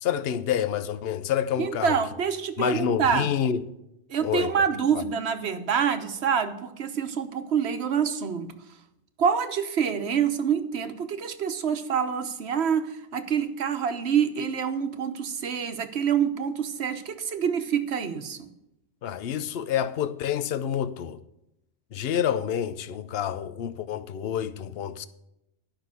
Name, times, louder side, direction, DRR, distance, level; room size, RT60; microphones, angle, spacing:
voice 1, 0.0-2.0 2.6-3.6 4.2-4.5 4.9-5.0 19.0-21.2 21.9-25.1, left 9 dB, 60° left, 0.9 m, -28 dB
voice 2, 1.6-3.3 4.1-8.5 9.2-18.5, right 7 dB, 65° right, 1.2 m, -26 dB
11.5 x 5.9 x 8.2 m
omnidirectional pair, 1.2 m